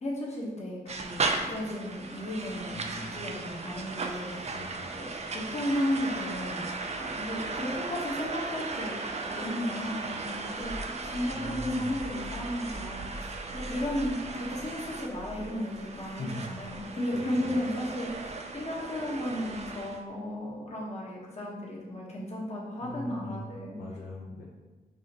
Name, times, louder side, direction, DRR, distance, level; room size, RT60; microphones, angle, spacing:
voice 1, 0.0-2.8 3.1-4.5 4.9-5.1 5.3-6.6 7.0-8.9 9.3-23.8, left 1 dB, 40° left, -4 dB, 1.1 m, -34 dB
sound 1, 0.9-20.0, right 3 dB, 40° right, 0.4 m, -37 dB
voice 2, 2.7-3.1 4.4-4.8 11.3-12.0 16.0-16.5 17.1-17.6 22.8-23.5 23.8-24.5, left 2 dB, 70° left, -5 dB, 0.7 m, -41 dB
sound 2, 10.2-16.1 16.5-16.8 18.0-18.3 19.5-19.9, right 1 dB, 85° right, 0.7 m, -45 dB
4.9 x 2.5 x 2.9 m, 1.2 s
cardioid pair, 50°, 16 cm